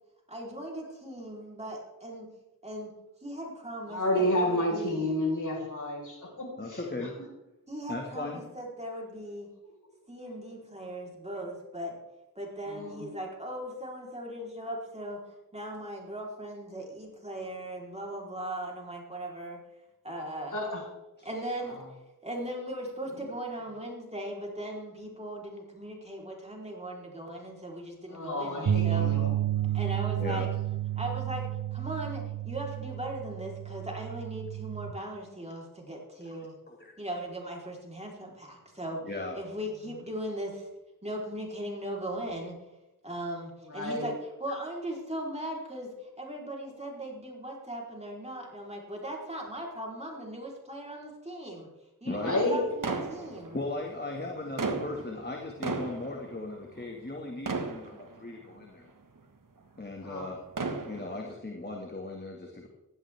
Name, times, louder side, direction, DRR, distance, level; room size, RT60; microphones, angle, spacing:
voice 1, 0.3-2.3 2.6-2.9 3.2-5.1 7.7-9.5 10.1-12.0 12.4-15.2 15.5-19.6 20.0-20.6 21.2-21.8 22.2-29.1 29.7-30.5 31.0-36.5 37.0-39.0 39.3-40.7 41.0-42.6 43.0-51.7 52.0-53.6, right 1 dB, 20° right, -2 dB, 3.8 m, -38 dB
voice 2, 3.9-6.8 12.7-13.0 20.5-20.8 28.1-29.6 43.7-44.0 52.2-52.6 60.0-60.3, left 1 dB, 55° left, -1 dB, 4.8 m, -30 dB
voice 3, 6.6-7.2 7.9-8.4 11.4-11.5 21.2-21.3 30.2-30.4 36.2-36.9 39.0-39.4 44.5-44.6 52.0-52.4 53.5-58.9 59.8-60.4 60.9-62.7, left 2 dB, 30° left, 0 dB, 1.9 m, -37 dB
sound 1, 28.7-34.9, right 12 dB, 85° right, 1.0 m, -31 dB
sound 2, 52.8-53.8 54.3-57.2 57.5-58.5 59.2-59.3 60.3-61.4, right 3 dB, 60° right, 1.6 m, -35 dB
16.0 x 13.0 x 3.5 m, 1.0 s
wide cardioid pair, 60°, 36 cm